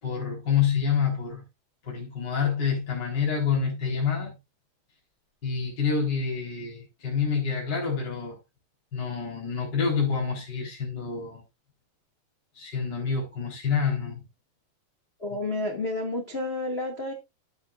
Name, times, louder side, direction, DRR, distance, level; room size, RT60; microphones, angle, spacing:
voice 1, 0.0-1.4 1.8-4.4 5.4-8.4 8.9-11.4 12.5-14.2, left 6 dB, 25° left, 4.4 m, -27 dB
voice 2, 15.2-17.1, left 2 dB, 50° left, 0.7 m, -30 dB
14.5 x 7.8 x 2.5 m
omnidirectional pair, 5.2 m